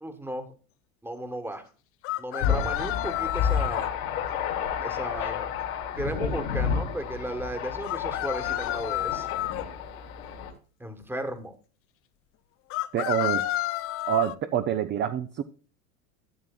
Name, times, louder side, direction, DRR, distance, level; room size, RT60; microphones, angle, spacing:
voice 1, 0.0-0.5 1.0-1.7 2.2-3.9 4.8-5.6 6.0-9.3 10.8-11.5, right 1 dB, 5° right, 7 dB, 1.3 m, -35 dB
sound 1, 2.0-3.9 7.8-9.6 12.7-14.4, left 15 dB, 30° left, 0.4 m, -30 dB
Thunder, 2.4-10.5, left 7 dB, 75° left, 2.6 m, -30 dB
voice 2, 12.9-13.4 14.1-15.4, right 10 dB, 25° right, 10 dB, 0.5 m, -26 dB
13.0 x 7.4 x 2.3 m, 0.37 s
hypercardioid pair, 95°, 44 cm